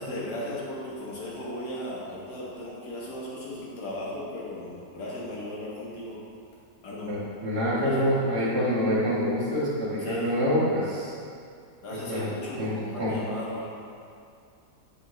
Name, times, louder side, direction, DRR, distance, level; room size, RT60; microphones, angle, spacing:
voice 1, 0.0-6.2 6.8-7.1 7.8-8.1 10.0-10.3 11.8-13.7, left 1 dB, 75° left, -6 dB, 1.9 m, -36 dB
voice 2, 7.1-11.1 12.1-12.3 12.6-12.7 13.0-13.1, equal, 65° right, -8 dB, 2.1 m, -26 dB
7.9 x 5.2 x 3.1 m, 2.3 s
omnidirectional pair, 1.8 m